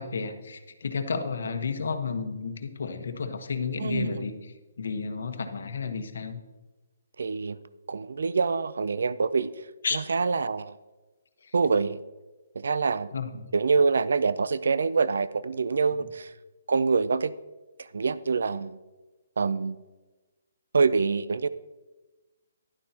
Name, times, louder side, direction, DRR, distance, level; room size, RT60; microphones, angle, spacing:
voice 1, 0.0-6.4 9.8-10.2 11.4-11.5 13.1-13.5, left 5 dB, 65° left, 7 dB, 1.1 m, -32 dB
voice 2, 3.8-4.2 7.2-7.6 7.9-9.5 10.1-10.7 11.5-12.0 12.6-13.1 13.5-16.3 16.7-17.3 17.9-18.8 19.4-19.8 20.7-21.5, right 4 dB, 70° right, 16 dB, 0.4 m, -25 dB
11.5 x 11.0 x 2.9 m, 1.2 s
hypercardioid pair, 175°, 0 cm